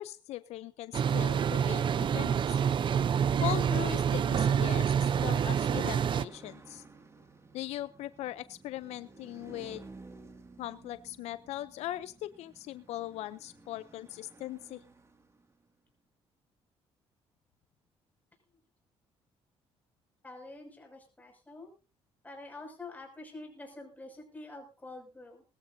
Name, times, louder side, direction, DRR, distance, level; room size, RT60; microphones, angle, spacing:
voice 1, 0.0-1.8 2.1-2.6 3.4-6.8 7.5-9.8 10.6-14.8, left 14 dB, 80° left, 15 dB, 0.6 m, -39 dB
sound 1, 0.9-6.3, right 8 dB, 50° right, 0.6 m, -27 dB
sound 2, 2.3-15.7, right 3 dB, 25° right, 2.2 m, -54 dB
voice 2, 20.2-21.7 22.2-25.4, left 2 dB, 15° left, 2 dB, 6.3 m, -47 dB
21.0 x 14.0 x 2.7 m, 0.32 s
cardioid pair, 95°, 11 cm